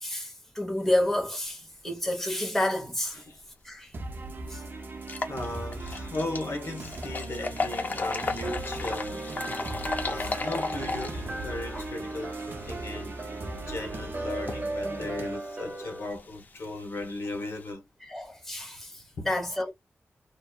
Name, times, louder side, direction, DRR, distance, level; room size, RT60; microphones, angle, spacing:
voice 1, 0.0-3.2 3.6-3.9 4.5-4.6 11.7-11.8 18.0-19.7, left 1 dB, 5° left, 0.8 m, -30 dB
sound 1, 3.7-3.8 4.2-4.3 4.9-17.7, left 3 dB, 40° left, 0.4 m, -37 dB
sound 2, 3.9-15.4, right 2 dB, 50° right, 0.5 m, -39 dB
voice 2, 5.3-13.3 13.5-17.9 19.2-19.4, left 2 dB, 75° left, 0.9 m, -37 dB
sound 3, 8.4-16.0, right 2 dB, 30° right, 1.2 m, -38 dB
2.6 x 2.3 x 2.2 m
wide cardioid pair, 140°, 4 cm